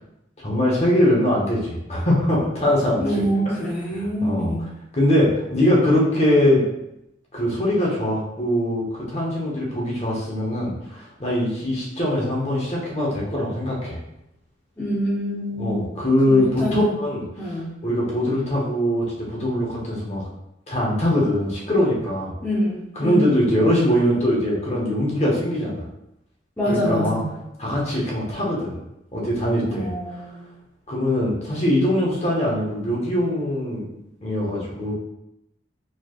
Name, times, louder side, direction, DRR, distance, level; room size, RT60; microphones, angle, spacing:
voice 1, 0.4-3.2 4.2-4.5 4.9-6.6 7.3-14.0 15.6-20.3 20.7-22.3 23.0-25.8 26.7-27.2 27.6-28.8 29.1-29.9 30.9-33.9 34.2-34.9, left 1 dB, 35° left, -4 dB, 1.0 m, -22 dB
voice 2, 3.0-4.6 14.8-15.9 16.3-16.9 17.4-17.7 22.4-23.3 26.6-27.3 29.7-30.5, equal, 10° left, -9 dB, 0.8 m, -25 dB
4.2 x 3.3 x 2.4 m, 0.86 s
head